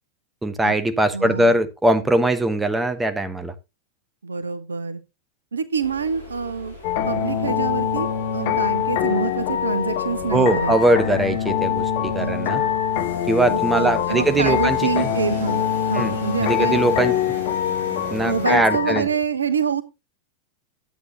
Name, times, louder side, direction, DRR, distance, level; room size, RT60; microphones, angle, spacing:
voice 1, 0.4-3.5 10.3-12.6 13.3-15.1 15.9-16.1 16.4-17.4 18.1-19.1, right 1 dB, 10° right, 1.0 m, -21 dB
voice 2, 1.1-1.6 4.2-5.0 5.5-6.7 7.1-8.1 8.3-11.0 12.2-12.7 13.5-16.8 18.2-19.8, right 5 dB, 75° right, 0.9 m, -26 dB
sound 1, 5.8-18.5, left 1 dB, 80° left, 4.5 m, -39 dB
sound 2, 6.8-19.0, left 9 dB, 50° left, 1.2 m, -24 dB
11.5 x 8.4 x 2.9 m
figure-of-eight pair, 90°, 0 cm